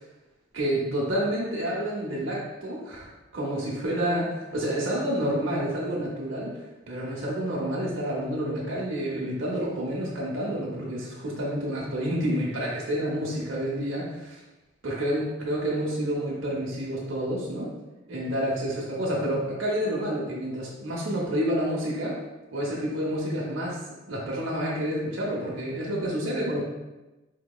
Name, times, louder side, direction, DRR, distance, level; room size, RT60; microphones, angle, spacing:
voice 1, 0.5-6.5 6.9-14.4 14.8-17.7 18.1-22.1 22.5-23.8 24.1-26.6, equal, 90° right, -4 dB, 0.8 m, -29 dB
4.6 x 2.8 x 2.3 m, 1.1 s
head